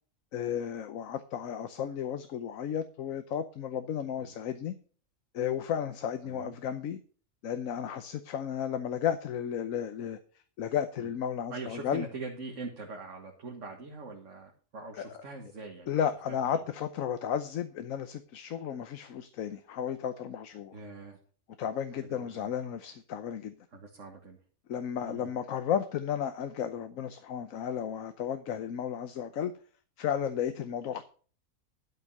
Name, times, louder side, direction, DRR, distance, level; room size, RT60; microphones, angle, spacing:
voice 1, 0.3-4.7 5.3-7.0 7.4-10.2 10.6-12.0 15.0-15.2 15.9-20.7 21.6-23.6 24.7-29.5 30.0-31.0, left 9 dB, 75° left, 10 dB, 1.2 m, -33 dB
voice 2, 6.2-6.5 11.0-11.1 11.5-15.9 16.5-16.6 20.7-21.2 22.0-22.5 23.7-24.4 25.0-25.3, right 3 dB, 60° right, 0 dB, 1.9 m, -43 dB
12.0 x 5.8 x 6.5 m, 0.42 s
omnidirectional pair, 1.4 m